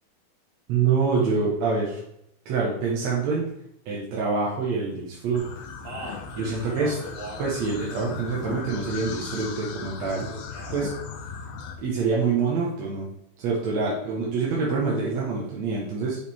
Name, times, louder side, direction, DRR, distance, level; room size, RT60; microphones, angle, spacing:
voice 1, 0.7-2.0 2.5-3.5 3.9-5.5 6.0-7.0 7.4-10.3 10.7-10.9 11.8-13.1 13.4-16.2, right 4 dB, 60° right, -5 dB, 2.0 m, -26 dB
sound 1, 5.3-11.7, left 6 dB, 85° left, 2.7 m, -38 dB
Speech, 5.6-7.5 7.8-8.7 10.1-10.8, right 1 dB, 85° right, 4.1 m, -40 dB
7.8 x 5.1 x 3.5 m, 0.75 s
omnidirectional pair, 4.2 m